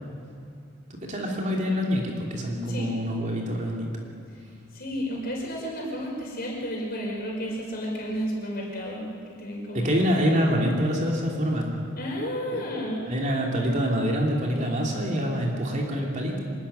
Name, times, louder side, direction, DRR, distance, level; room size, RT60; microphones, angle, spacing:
voice 1, 0.9-3.9 9.7-11.7 12.5-12.6 13.1-16.4, equal, 35° right, 0 dB, 2.9 m, -26 dB
voice 2, 4.7-9.9 12.0-13.0, equal, 45° left, -2 dB, 5.5 m, -32 dB
26.0 x 13.0 x 10.0 m, 2.4 s
head